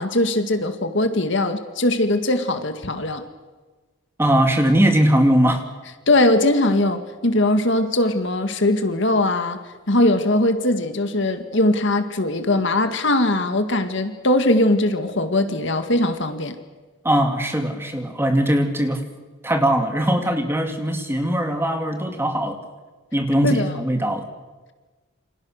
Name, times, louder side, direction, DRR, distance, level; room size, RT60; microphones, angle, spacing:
voice 1, 0.0-3.2 6.1-9.6 9.9-16.6 23.4-23.7, left 1 dB, 60° left, 8 dB, 2.0 m, -20 dB
voice 2, 4.2-5.6 17.0-19.0 19.4-22.6 23.1-24.3, right 1 dB, 10° right, 5 dB, 2.4 m, -20 dB
28.5 x 26.0 x 6.5 m, 1.3 s
head